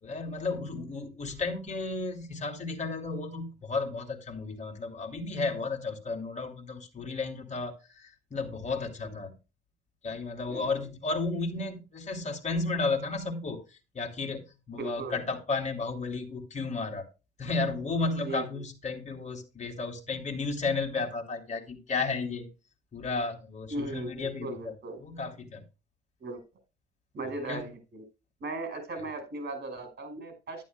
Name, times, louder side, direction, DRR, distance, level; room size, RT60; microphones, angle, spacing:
voice 1, 0.0-9.3 10.0-17.1 17.4-22.5 22.9-24.7 25.0-25.6 27.2-27.7, left 3 dB, 35° left, 2 dB, 2.9 m, -33 dB
voice 2, 14.7-15.2 18.2-18.6 23.7-25.0 26.2-26.4 27.1-28.0 28.4-30.7, right 2 dB, 55° right, 8 dB, 5.2 m, -37 dB
11.0 x 11.0 x 2.2 m, 0.29 s
cardioid pair, 90°, 20 cm